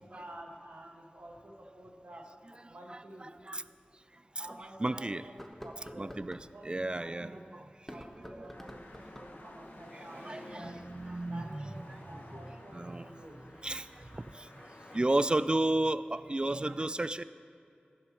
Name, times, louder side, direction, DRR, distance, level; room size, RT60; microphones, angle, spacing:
voice 1, 0.0-2.2 2.7-3.3 4.3-5.4 5.6-6.2 6.5-7.6 7.9-10.8 11.2-13.4, right 1 dB, 70° right, -1 dB, 1.6 m, -50 dB
sound 1, 2.1-2.2 3.3-3.4 4.0-4.1 5.2-6.5 7.7-9.4, equal, 5° left, 0.9 m, -48 dB
voice 2, 2.5-3.6 4.4-5.3 6.0-7.7 8.4-8.5 9.4-9.6 9.9-12.4 12.7-13.1 13.6-14.7 14.9-17.2, right 2 dB, 25° right, 15 dB, 0.3 m, -34 dB
sound 2, 8.5-15.0, left 1 dB, 60° left, 1.3 m, -52 dB
16.5 x 11.5 x 3.1 m, 2.5 s
wide cardioid pair, 65°, 4 cm